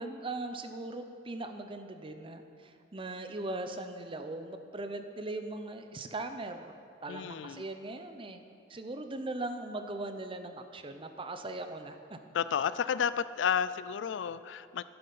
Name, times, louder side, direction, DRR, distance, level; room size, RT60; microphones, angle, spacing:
voice 1, 0.0-6.7 7.0-8.4 8.7-12.2, right 2 dB, 30° right, 8 dB, 0.6 m, -39 dB
voice 2, 7.1-7.7 12.3-14.8, left 7 dB, 75° left, 15 dB, 0.3 m, -31 dB
12.5 x 7.8 x 5.5 m, 2.6 s
head